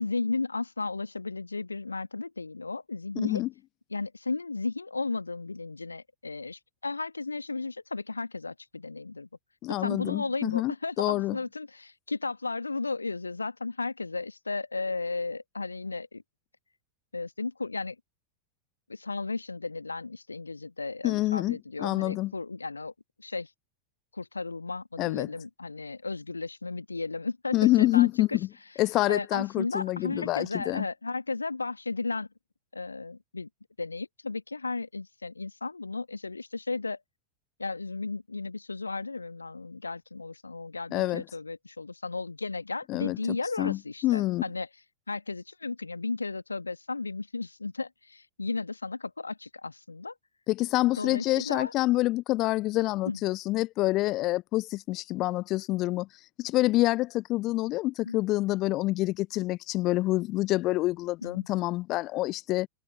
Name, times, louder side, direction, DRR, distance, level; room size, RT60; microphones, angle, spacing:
voice 1, 0.0-3.4 3.9-9.3 9.7-16.2 17.1-17.9 18.9-22.9 23.2-23.5 24.1-28.4 29.1-32.3 32.7-33.5 33.8-37.0 37.6-44.7 45.1-50.1 51.0-51.7 53.0-53.2 58.0-58.2 61.2-61.5, left 3 dB, 80° left, 1.5 m, -34 dB
voice 2, 9.6-11.4 21.0-22.3 25.0-25.3 27.5-28.5 28.8-30.9 40.9-41.2 42.9-43.2 43.6-44.4 50.5-62.7, left 18 dB, 40° left, 0.5 m, -27 dB
figure-of-eight pair, 90°, 0 cm